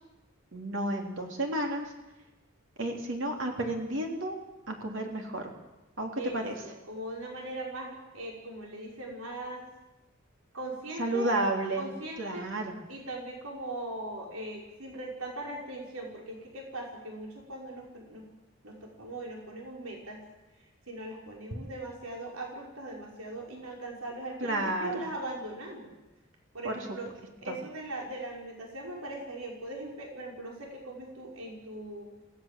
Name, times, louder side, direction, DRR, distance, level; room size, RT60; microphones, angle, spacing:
voice 1, 0.5-1.9 2.8-4.4 4.7-5.5 6.0-6.6 11.0-11.9 12.2-12.7 24.4-25.0 26.6-26.7 27.5-27.6, right 1 dB, 60° right, 2 dB, 3.4 m, -31 dB
voice 2, 6.2-9.6 10.5-11.4 11.8-12.5 12.9-18.3 18.6-20.2 20.9-25.9 26.5-27.1 27.4-32.1, right 1 dB, 90° right, 0 dB, 5.4 m, -40 dB
27.5 x 17.5 x 7.6 m, 1.0 s
head